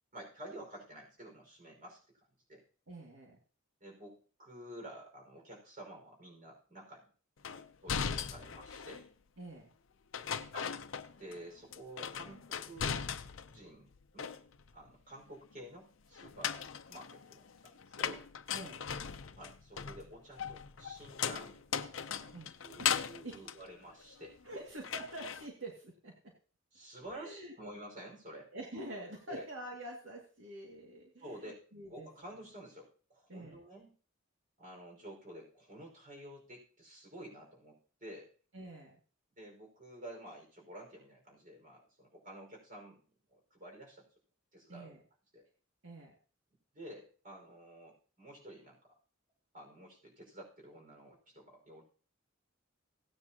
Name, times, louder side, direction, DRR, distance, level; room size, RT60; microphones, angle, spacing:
voice 1, 0.1-2.0 2.5-2.6 3.8-7.1 7.5-9.1 10.3-10.8 11.2-13.0 13.3-14.4 14.7-18.2 19.3-22.3 22.6-24.4 26.7-28.5 29.3-29.5 31.2-33.9 34.6-38.3 39.3-43.0 43.3-44.1 44.5-45.0 45.3-45.4 46.7-48.8 49.5-51.8, right 1 dB, 40° right, 1 dB, 5.2 m, -51 dB
voice 2, 2.9-3.4 9.4-9.7 18.5-18.8 22.3-22.5 22.8-22.9 23.2-23.5 24.4-26.3 27.1-27.5 28.5-32.1 33.3-33.6 38.5-39.0 44.7-45.0 45.8-46.1, right 1 dB, 80° right, -1 dB, 2.3 m, -46 dB
sound 1, 7.4-9.1 10.1-11.4 11.7-13.6 13.9-14.8 16.2-24.5 24.8-25.5, left 7 dB, 75° left, 0.7 m, -38 dB
17.0 x 9.7 x 2.9 m, 0.40 s
head